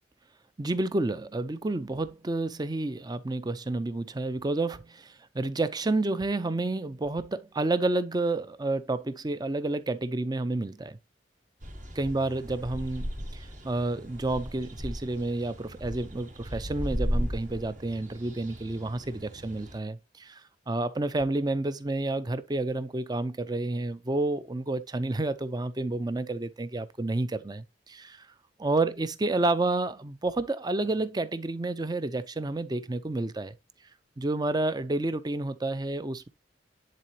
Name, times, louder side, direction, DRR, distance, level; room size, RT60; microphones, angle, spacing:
voice 1, 0.6-11.0 12.0-20.4 20.7-28.2 28.6-33.5 34.2-36.3, right 2 dB, 25° right, 0.5 m, -30 dB
sound 1, 11.6-19.8, equal, 45° right, 1.4 m, -36 dB
10.5 x 4.0 x 2.8 m
head